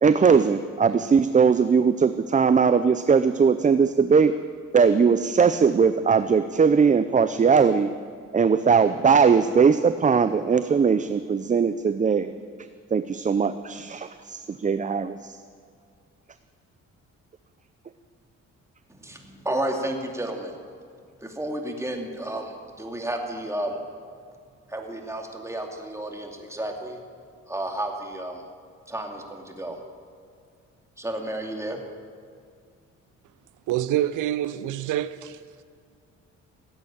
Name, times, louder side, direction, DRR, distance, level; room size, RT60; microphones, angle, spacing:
voice 1, 0.0-4.3 4.7-7.9 8.3-12.3 12.9-15.4, right 6 dB, 25° right, 0.6 m, -20 dB
voice 2, 18.9-20.6 21.2-23.8 24.7-27.0 27.5-28.4 28.9-29.8 31.0-31.8, right 1 dB, 10° right, 2.5 m, -32 dB
voice 3, 33.7-35.6, right 12 dB, 85° right, 0.6 m, -27 dB
16.5 x 9.1 x 8.6 m
cardioid pair, 90°, 30 cm